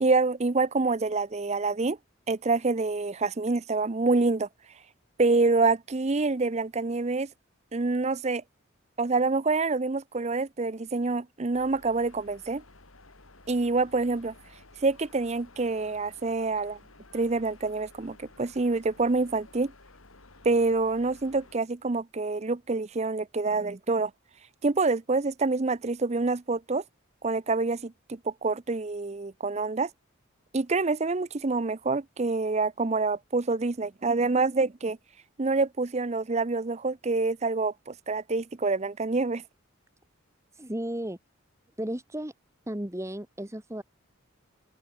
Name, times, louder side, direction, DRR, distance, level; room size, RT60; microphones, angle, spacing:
voice 1, 0.0-2.0 2.3-4.5 5.2-7.3 7.7-8.4 9.0-12.6 13.5-14.3 14.8-16.8 17.1-19.7 20.4-24.1 24.6-26.8 27.2-29.9 30.5-35.0 35.4-39.4, right 3 dB, 30° right, 0.6 m, -26 dB
sound 1, 11.5-21.6, left 2 dB, 85° left, 4.9 m, -54 dB
voice 2, 40.5-41.2 41.8-42.3 42.7-43.8, right 1 dB, 15° right, 1.5 m, -34 dB
open air
head